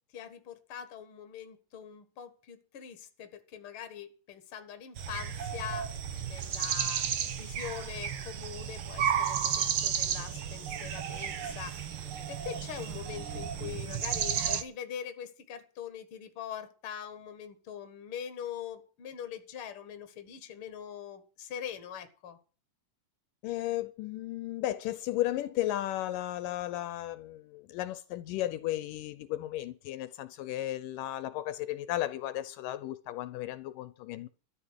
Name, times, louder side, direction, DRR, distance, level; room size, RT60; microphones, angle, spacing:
voice 1, 0.1-5.9 6.2-22.4, left 9 dB, 45° left, 2.2 m, -43 dB
sound 1, 5.0-14.6, right 8 dB, 55° right, 1.5 m, -33 dB
voice 2, 23.4-34.3, left 14 dB, 80° left, 2.4 m, -34 dB
13.5 x 10.5 x 6.6 m
omnidirectional pair, 3.9 m